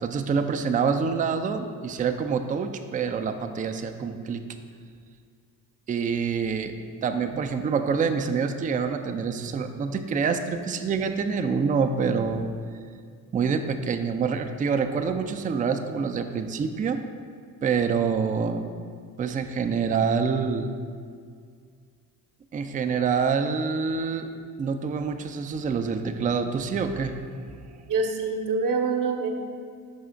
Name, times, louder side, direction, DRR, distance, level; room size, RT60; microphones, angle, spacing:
voice 1, 0.0-4.4 5.9-6.7 7.0-12.5 13.3-17.0 17.6-18.7 19.2-20.7 22.5-24.3 24.6-27.2 27.4-27.8, right 5 dB, 20° right, 7 dB, 0.3 m, -26 dB
voice 2, 27.9-29.3, right 4 dB, 45° right, 4 dB, 0.8 m, -25 dB
5.5 x 3.5 x 5.0 m, 2.1 s
hypercardioid pair, 50°, 46 cm